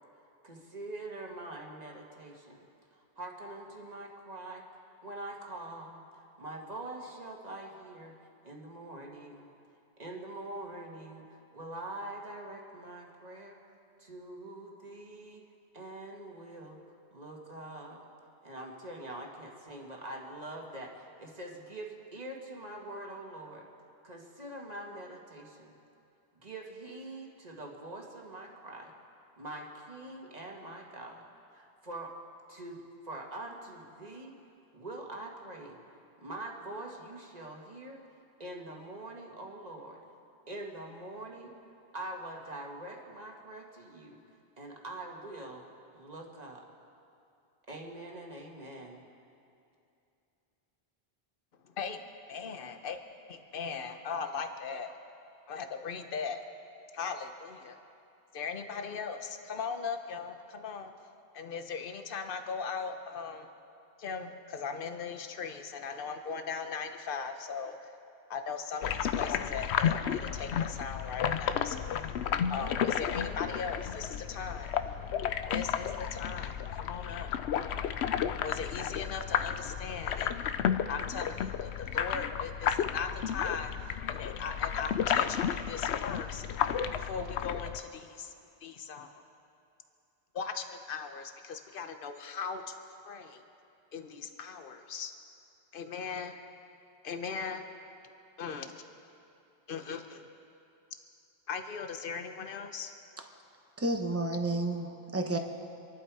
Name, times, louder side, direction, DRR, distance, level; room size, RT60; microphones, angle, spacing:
voice 1, 0.4-2.7 3.0-4.6 5.0-6.0 6.4-8.1 8.4-9.5 10.0-13.6 14.0-15.4 15.7-16.8 17.1-18.0 18.4-23.7 24.0-25.7 26.4-28.9 29.4-31.2 31.5-32.1 32.5-34.3 34.7-35.8 36.2-38.0 38.4-40.0 40.5-41.5 41.9-44.2 44.6-45.6 45.9-46.6 47.7-49.0, right 1 dB, 40° right, 0 dB, 1.8 m, -44 dB
voice 2, 52.3-53.0 53.3-54.9 55.5-56.4 56.9-57.8 58.3-60.9 61.3-63.5 64.0-67.8 68.3-71.9 72.5-74.7 75.5-77.3 78.4-80.3 80.9-86.4 86.9-88.3 88.6-89.2 90.3-92.7 93.0-93.4 93.9-95.1 95.7-96.3 97.0-97.6 98.4-98.8 99.7-100.3 101.5-102.9, left 5 dB, 55° left, 7 dB, 1.1 m, -39 dB
sound 1, 68.8-87.8, left 8 dB, 85° left, 0.9 m, -32 dB
voice 3, 103.8-105.4, right 2 dB, 15° right, 4 dB, 0.9 m, -31 dB
26.0 x 11.5 x 4.8 m, 2.7 s
omnidirectional pair, 1.1 m